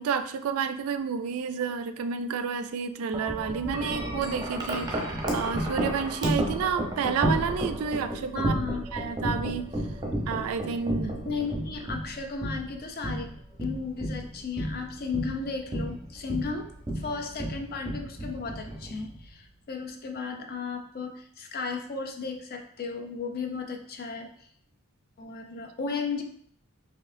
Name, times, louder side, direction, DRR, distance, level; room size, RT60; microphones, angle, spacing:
voice 1, 0.0-8.6 8.9-9.7 10.3-11.2, right 6 dB, 70° right, 9 dB, 0.3 m, -30 dB
Wind chime, 3.1-19.3, right 1 dB, 20° right, 0.7 m, -32 dB
voice 2, 8.3-8.9 11.2-13.3 13.6-16.7 16.9-24.5 25.2-26.2, left 4 dB, 45° left, 4 dB, 0.5 m, -34 dB
4.2 x 2.7 x 2.5 m, 0.62 s
head